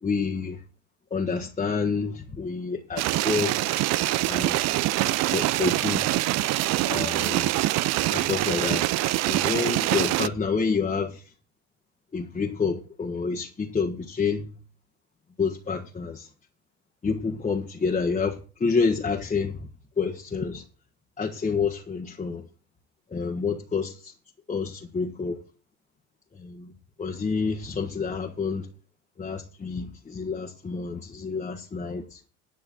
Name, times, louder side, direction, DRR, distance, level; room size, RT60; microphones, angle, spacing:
voice 1, 0.0-0.6 1.1-3.7 4.3-4.6 5.0-6.1 6.9-7.5 8.0-9.0 9.3-11.2 12.1-14.5 15.4-16.3 17.0-19.7 20.0-20.6 21.2-22.5 23.1-24.1 24.5-25.4 26.4-26.7 27.0-28.7 29.2-32.2, left 5 dB, 20° left, 1.4 m, -28 dB
sound 1, 3.0-10.3, right 17 dB, 50° right, 0.5 m, -24 dB
11.0 x 6.0 x 7.3 m
hypercardioid pair, 75°, 35 cm